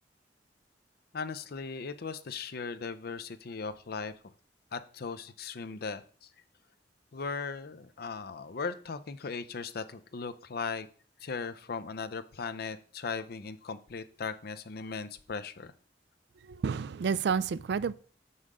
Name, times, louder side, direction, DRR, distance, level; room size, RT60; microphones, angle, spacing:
voice 1, 1.1-4.1 4.7-6.3 7.1-10.9 11.2-15.7, left 5 dB, 60° left, 0.6 m, -38 dB
voice 2, 16.4-17.9, right 6 dB, 65° right, 0.4 m, -30 dB
6.6 x 5.6 x 4.8 m
head